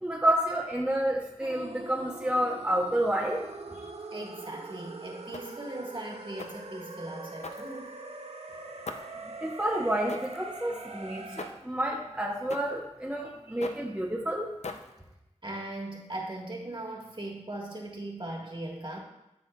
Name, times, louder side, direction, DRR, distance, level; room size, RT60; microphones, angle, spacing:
voice 1, 0.0-3.4 3.7-3.9 9.4-14.5, right 1 dB, 10° right, -2 dB, 0.9 m, -29 dB
sound 1, 1.4-11.5, right 3 dB, 65° right, 0.7 m, -43 dB
voice 2, 4.1-8.0 15.4-19.0, right 1 dB, 45° right, -2 dB, 1.5 m, -39 dB
sound 2, 5.3-5.7 6.4-6.7 7.4-8.1 8.8-9.2 10.1-10.5 11.4-11.7 12.5-12.8 13.6-13.9 14.6-15.1, left 3 dB, 70° left, 0.5 m, -41 dB
11.5 x 4.3 x 2.3 m, 0.89 s
wide cardioid pair, 45°, 12 cm